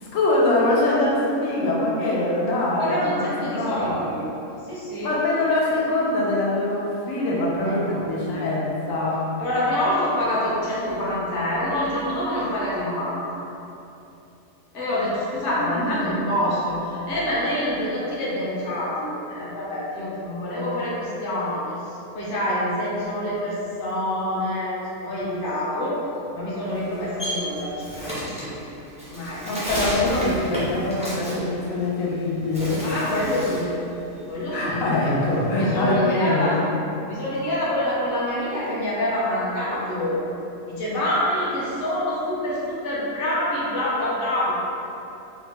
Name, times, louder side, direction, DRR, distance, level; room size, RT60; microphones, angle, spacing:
voice 1, 0.0-4.0 5.0-9.3 15.4-16.3 29.4-32.8 34.5-36.5, left 2 dB, 90° left, -5 dB, 1.0 m, -23 dB
voice 2, 2.8-4.2 4.6-5.1 7.6-8.0 9.4-13.4 14.7-26.0 26.3-28.6 29.0-29.5 32.8-33.7 34.3-35.1 35.5-36.6 37.1-40.2 40.7-44.5, left 1 dB, 50° left, -8 dB, 0.8 m, -26 dB
Bird, 26.6-32.1 32.4-33.7 34.1-35.8, equal, 10° right, 0.4 m, -32 dB
3.0 x 2.0 x 3.3 m, 2.9 s
omnidirectional pair, 1.4 m